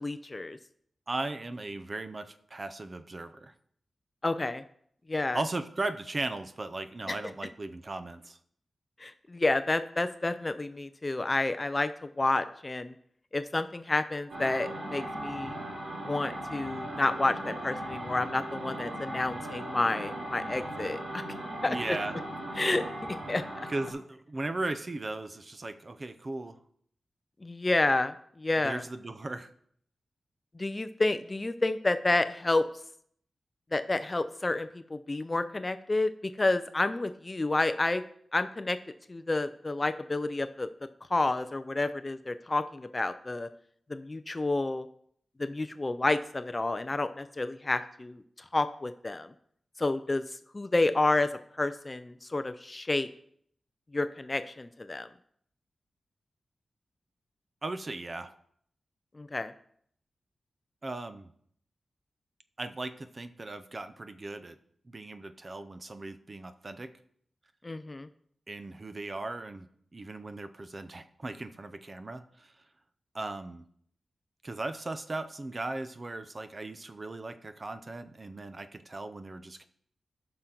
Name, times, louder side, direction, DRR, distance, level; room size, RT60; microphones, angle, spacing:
voice 1, 0.0-0.6 4.2-4.6 5.1-5.4 7.1-7.2 9.0-11.9 12.2-12.9 13.3-15.5 16.0-21.2 21.6-21.8 22.6-22.8 23.3-23.4 27.4-28.8 30.6-32.6 33.7-36.1 36.4-38.0 38.3-38.8 39.1-40.7 41.1-43.5 43.9-44.8 45.4-48.2 48.5-49.3 49.8-50.2 50.5-51.3 51.6-53.1 53.9-55.1 59.2-59.5 67.6-68.1, left 2 dB, 20° left, 11 dB, 0.4 m, -29 dB
voice 2, 1.1-3.5 5.3-8.4 21.6-22.2 23.7-26.6 28.6-29.5 57.6-58.3 60.8-61.3 62.6-64.6 64.9-66.9 68.5-69.7 69.9-72.5 73.1-73.6 74.4-79.6, right 2 dB, 30° right, 10 dB, 0.6 m, -37 dB
sound 1, 14.3-23.9, right 1 dB, 80° right, 2.8 m, -38 dB
14.0 x 5.8 x 3.8 m, 0.65 s
wide cardioid pair, 175°, 0 cm